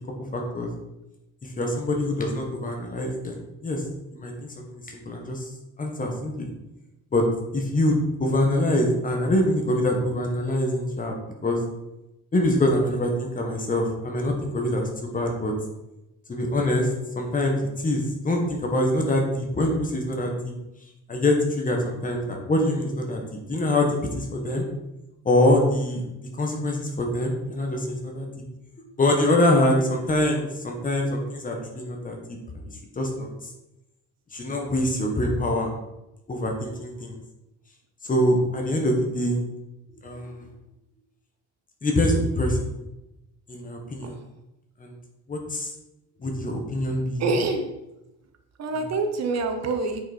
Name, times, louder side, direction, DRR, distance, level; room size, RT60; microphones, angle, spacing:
voice 1, 0.3-0.7 1.4-3.8 4.1-5.4 5.8-6.5 7.1-7.2 7.5-11.1 11.4-11.6 12.3-15.5 16.3-16.9 17.1-20.5 21.1-23.2 23.5-24.6 25.2-26.0 26.4-28.3 29.0-32.7 32.9-33.3 34.3-35.7 36.3-37.2 38.0-39.4 40.0-40.5 41.8-42.7 43.5-44.2 44.8-44.9 45.3-45.7 46.2-47.3 48.7-48.9, left 1 dB, 25° left, 2 dB, 1.6 m, -24 dB
voice 2, 47.2-47.7 48.6-50.0, right 3 dB, 55° right, 6 dB, 1.0 m, -26 dB
8.8 x 5.6 x 4.4 m, 0.94 s
cardioid pair, 145°, 32 cm